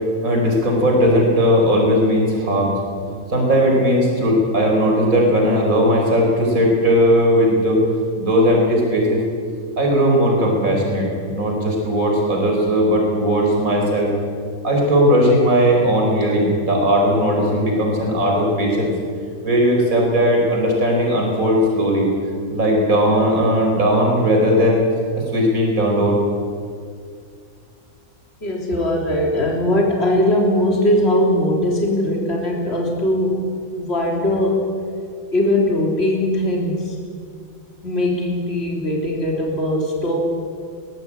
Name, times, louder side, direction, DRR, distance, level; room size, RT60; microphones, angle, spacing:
voice 1, 0.2-2.8 3.3-7.8 8.2-9.2 9.8-14.1 14.6-18.9 19.4-22.1 22.5-24.8 25.3-26.2, equal, 70° right, 0 dB, 5.2 m, -17 dB
voice 2, 28.4-33.4 33.7-34.6 35.3-37.0 37.8-40.2, left 1 dB, 45° left, -1 dB, 3.9 m, -20 dB
23.0 x 19.0 x 8.7 m, 2.2 s
omnidirectional pair, 1.5 m